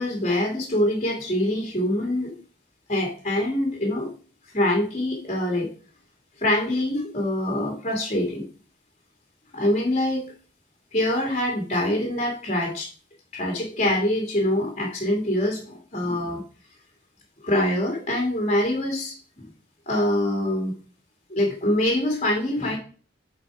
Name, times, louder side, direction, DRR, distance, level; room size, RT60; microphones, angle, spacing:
voice 1, 0.0-2.3 2.9-4.1 4.5-5.7 6.4-8.5 9.5-10.3 10.9-12.9 13.3-16.4 17.4-19.4 19.9-20.7 21.3-22.8, left 1 dB, 35° left, 0 dB, 2.1 m, -24 dB
8.3 x 4.7 x 4.7 m, 0.39 s
head